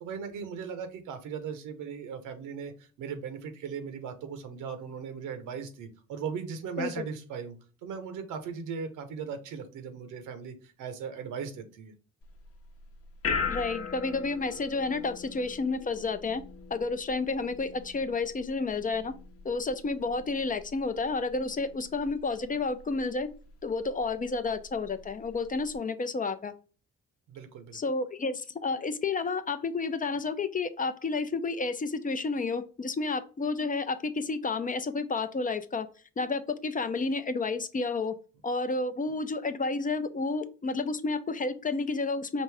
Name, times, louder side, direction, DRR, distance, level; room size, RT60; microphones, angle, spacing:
voice 1, 0.0-2.7 3.0-7.5 7.8-11.9 27.3-27.8, right 6 dB, 90° right, 8 dB, 0.9 m, -38 dB
sound 1, 12.2-25.8, left 5 dB, 50° left, 0.9 m, -41 dB
voice 2, 13.5-16.4 16.7-19.1 19.4-23.3 23.6-26.5 27.7-35.9 36.2-38.2 38.4-42.4, left 3 dB, 30° left, 11 dB, 0.5 m, -31 dB
5.2 x 2.6 x 3.3 m, 0.37 s
cardioid pair, 90°, 30 cm